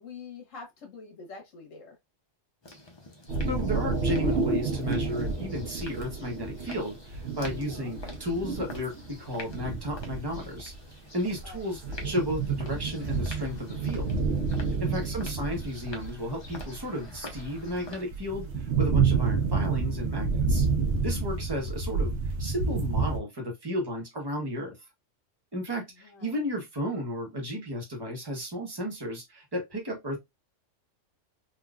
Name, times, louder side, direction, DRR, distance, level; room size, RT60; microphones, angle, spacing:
voice 1, 0.0-1.9 7.7-7.9 11.4-11.7 14.8-15.3 21.3-21.4 26.0-26.4, left 5 dB, 75° left, 1.4 m, -46 dB
sound 1, 2.6-18.0, left 2 dB, 30° left, 0.5 m, -48 dB
sound 2, 3.3-10.8 11.2-23.2, right 4 dB, 65° right, 1.0 m, -30 dB
voice 2, 3.5-10.7 11.1-14.1 14.8-20.7 21.0-24.8 25.5-30.2, equal, 20° right, 0.9 m, -33 dB
3.7 x 2.5 x 2.3 m
omnidirectional pair, 1.3 m